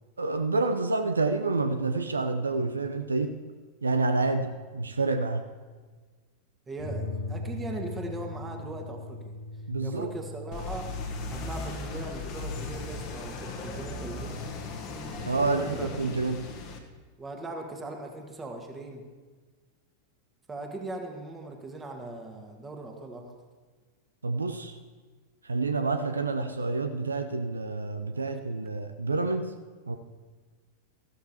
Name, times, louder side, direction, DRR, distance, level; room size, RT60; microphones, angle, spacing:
voice 1, 0.2-3.3 3.8-5.4 9.7-10.1 15.3-16.5 24.2-24.8 25.4-29.5 29.9-30.0, right 3 dB, 75° right, 8 dB, 0.5 m, -28 dB
voice 2, 6.7-9.3 9.8-10.9 11.3-14.4 15.4-16.3 17.2-19.1 20.5-23.3, right 2 dB, 15° right, 3 dB, 1.6 m, -39 dB
sound 1, 6.8-13.7, left 2 dB, 60° left, 2.0 m, -40 dB
sound 2, 10.5-16.8, left 3 dB, 40° left, 1.2 m, -37 dB
14.5 x 13.0 x 2.9 m, 1.4 s
figure-of-eight pair, 90°, 0 cm